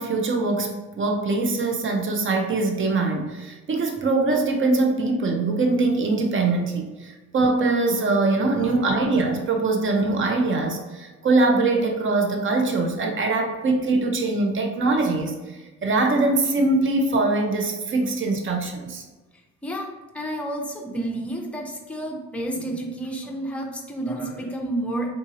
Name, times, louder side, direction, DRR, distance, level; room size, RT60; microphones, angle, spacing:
voice 1, 0.0-15.3 15.8-19.0, right 3 dB, 40° right, 3 dB, 0.7 m, -22 dB
voice 2, 8.3-9.2 19.6-25.1, right 1 dB, 5° left, 0 dB, 0.6 m, -31 dB
3.7 x 2.8 x 2.7 m, 1.2 s
cardioid pair, 90°, 30 cm